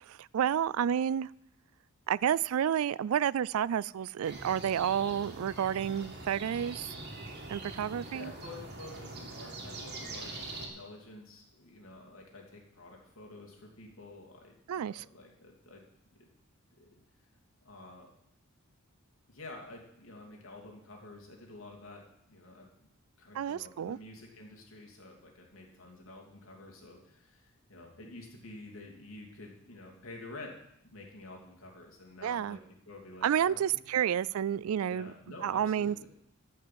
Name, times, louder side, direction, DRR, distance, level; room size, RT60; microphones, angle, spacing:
voice 1, 0.1-1.3 2.1-7.0 7.5-8.3 14.7-15.0 23.3-24.0 32.2-32.6 33.2-35.1 35.4-36.1, right 9 dB, 80° right, 22 dB, 0.3 m, -30 dB
sound 1, 4.2-10.7, right 2 dB, 50° right, 2.3 m, -43 dB
voice 2, 8.1-15.9 16.2-16.3 16.8-16.9 17.6-18.1 19.3-22.9 23.2-32.6 32.9-33.6 34.9-36.1, left 2 dB, 70° left, -1 dB, 2.8 m, -49 dB
13.5 x 5.6 x 7.5 m, 0.76 s
head